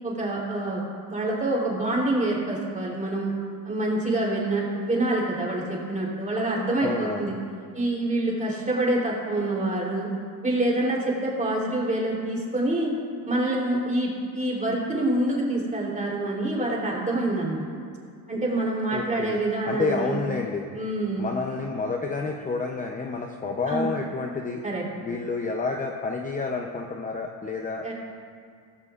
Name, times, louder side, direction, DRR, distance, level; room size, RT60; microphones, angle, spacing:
voice 1, 0.0-3.3 3.6-7.3 7.7-10.1 10.4-12.9 13.3-17.6 18.3-20.2 20.7-21.2 23.7-23.9 24.6-24.8 27.8-27.9, right 1 dB, 20° right, -3 dB, 3.3 m, -26 dB
voice 2, 6.8-7.2 18.9-19.4 19.6-20.7 21.2-24.6 25.0-27.8, left 4 dB, 20° left, 2 dB, 0.7 m, -29 dB
16.5 x 14.5 x 2.5 m, 2.2 s
cardioid pair, 120°, 40 cm